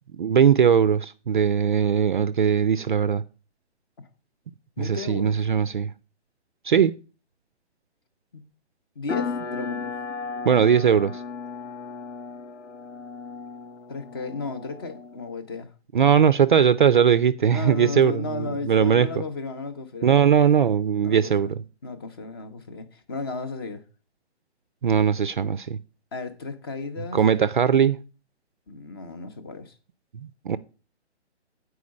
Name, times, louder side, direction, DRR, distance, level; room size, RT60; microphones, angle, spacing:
voice 1, 0.1-3.2 4.8-5.9 6.6-6.9 10.4-11.2 15.9-19.1 20.0-21.6 24.8-25.8 27.1-28.0 30.1-30.6, right 8 dB, 45° right, 0.4 m, -20 dB
voice 2, 4.8-5.4 8.3-8.4 9.0-9.9 13.9-15.7 17.5-20.2 21.0-21.5 21.8-23.8 26.1-27.5 28.7-29.7, left 3 dB, 20° left, 0.6 m, -34 dB
sound 1, 9.1-15.3, left 5 dB, 90° left, 1.0 m, -35 dB
8.4 x 4.7 x 6.2 m
hypercardioid pair, 150°, 34 cm